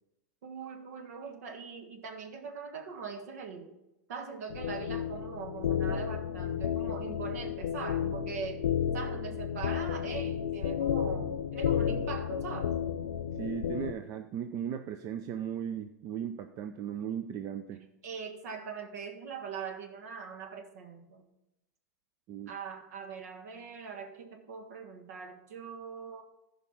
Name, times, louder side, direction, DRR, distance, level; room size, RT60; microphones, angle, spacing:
voice 1, 0.4-3.7 4.1-8.6 8.9-12.7 17.7-21.2 22.5-26.2, right 6 dB, 70° right, 5 dB, 1.6 m, -42 dB
sound 1, 4.5-13.9, left 8 dB, 80° left, 0.6 m, -32 dB
voice 2, 13.4-17.8 22.3-22.5, right 9 dB, 45° right, 8 dB, 0.6 m, -37 dB
14.5 x 5.2 x 4.5 m, 0.92 s
hypercardioid pair, 105°, 9 cm